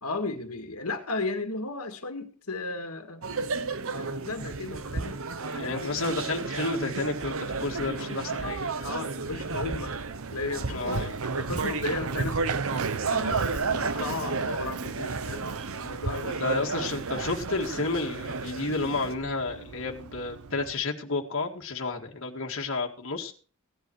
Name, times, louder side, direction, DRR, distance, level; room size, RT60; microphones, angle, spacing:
voice 1, 0.0-3.2 3.9-5.2 5.5-6.0 8.7-9.9 10.3-16.4, left 3 dB, 85° left, 6 dB, 1.9 m, -35 dB
sound 1, 3.2-19.1, right 4 dB, 65° right, 1.1 m, -32 dB
voice 2, 5.5-8.6 10.7-11.1 16.4-23.3, left 3 dB, 60° left, 1 dB, 2.0 m, -31 dB
Run, 9.2-20.7, right 6 dB, 80° right, 0.6 m, -40 dB
16.5 x 10.5 x 4.7 m, 0.40 s
head